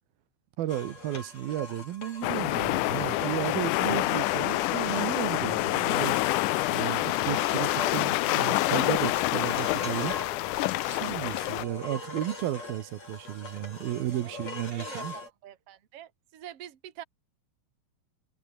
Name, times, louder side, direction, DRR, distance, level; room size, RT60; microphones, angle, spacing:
voice 1, 0.6-6.2 6.7-10.2 10.9-15.2, right 13 dB, 85° right, 3.2 m, -33 dB
sound 1, 0.7-15.3, left 3 dB, 45° left, 9.1 m, -42 dB
sound 2, 2.2-11.6, left 19 dB, 80° left, 1.9 m, -27 dB
sound 3, 9.9-14.4, right 3 dB, 20° right, 2.3 m, -51 dB
voice 2, 14.7-17.0, right 11 dB, 45° right, 2.6 m, -46 dB
omnidirectional pair, 4.1 m